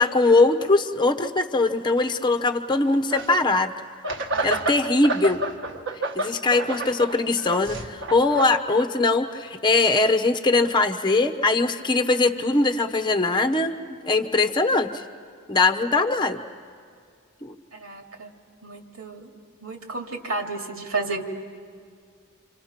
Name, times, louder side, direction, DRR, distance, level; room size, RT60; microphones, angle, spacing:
voice 1, 0.0-3.7 4.4-5.4 6.1-13.7 14.0-14.9 15.5-16.4 17.4-17.5, left 3 dB, 20° left, 6 dB, 0.9 m, -21 dB
sound 1, 3.1-3.6 4.0-8.9, right 2 dB, 60° right, 1.5 m, -30 dB
voice 2, 4.3-4.7 17.7-18.3 18.6-19.3 19.6-21.2, right 3 dB, 75° right, 2 dB, 2.4 m, -32 dB
29.0 x 26.0 x 5.9 m, 2.1 s
head